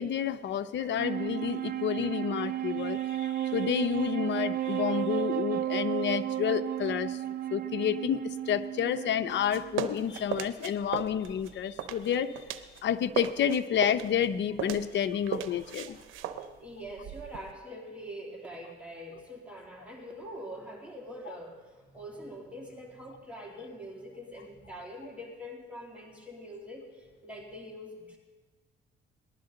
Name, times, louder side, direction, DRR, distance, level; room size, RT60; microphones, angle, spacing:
voice 1, 0.0-7.2 7.5-12.3 12.8-16.0, left 8 dB, 65° left, 10 dB, 0.7 m, -30 dB
Wind instrument woodwind instrument, 0.8-10.3, right 12 dB, 50° right, 0.4 m, -33 dB
sound 1, 9.3-12.8 13.1-17.5, right 9 dB, 90° right, 0.7 m, -37 dB
voice 2, 16.6-28.2, equal, 5° right, -2 dB, 2.9 m, -44 dB
19.5 x 11.5 x 3.9 m, 1.4 s
cardioid pair, 90°, 20 cm